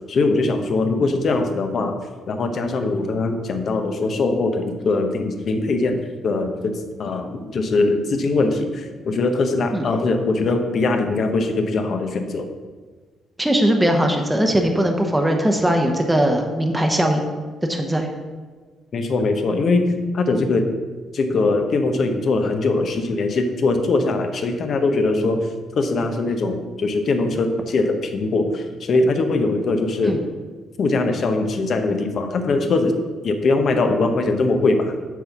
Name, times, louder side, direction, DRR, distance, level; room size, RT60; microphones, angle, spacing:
voice 1, 0.1-2.0 2.3-6.0 6.2-6.7 7.0-12.5 18.9-19.9 20.1-20.7 21.1-25.4 25.8-30.2 30.8-34.9, left 3 dB, 55° left, 6 dB, 0.9 m, -21 dB
voice 2, 13.4-17.2 17.7-18.1 30.0-30.2, right 1 dB, 10° right, 2 dB, 0.8 m, -20 dB
7.2 x 4.1 x 6.0 m, 1.4 s
cardioid pair, 90°, 0 cm